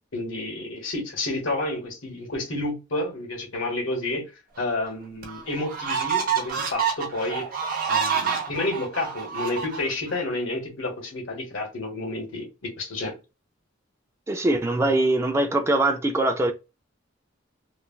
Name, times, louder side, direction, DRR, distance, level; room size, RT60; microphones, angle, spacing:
voice 1, 0.1-4.3 4.6-7.5 7.9-13.1, left 2 dB, 85° left, 1.5 m, -30 dB
sound 1, 4.6-4.7 5.2-10.2, right 7 dB, 45° right, 0.9 m, -28 dB
voice 2, 14.3-16.5, right 2 dB, 15° right, 0.3 m, -22 dB
3.1 x 2.4 x 2.3 m
head